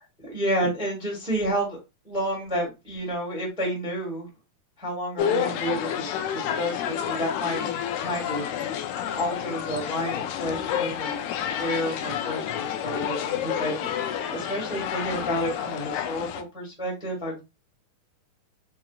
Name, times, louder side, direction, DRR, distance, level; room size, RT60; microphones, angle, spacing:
voice 1, 0.2-1.8 2.0-4.3 4.8-7.7 8.0-8.5 9.1-11.3 11.6-17.4, equal, 5° right, 0.8 m, -30 dB
sound 1, 5.2-16.4, left 9 dB, 85° left, 1.7 m, -29 dB
5.4 x 2.8 x 2.3 m
omnidirectional pair, 3.9 m